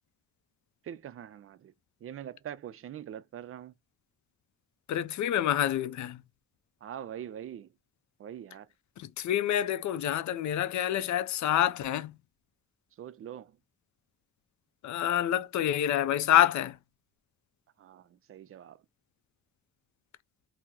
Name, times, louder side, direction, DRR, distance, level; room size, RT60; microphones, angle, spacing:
voice 1, 0.8-1.7 2.0-3.7 6.8-7.7 8.2-8.7 13.0-13.6 17.8-18.8, right 10 dB, 45° right, 0.4 m, -43 dB
voice 2, 4.9-6.2 9.0-12.2 14.8-16.8, left 11 dB, 65° left, 0.4 m, -27 dB
2.8 x 2.0 x 3.6 m
cardioid pair, 115°, 32 cm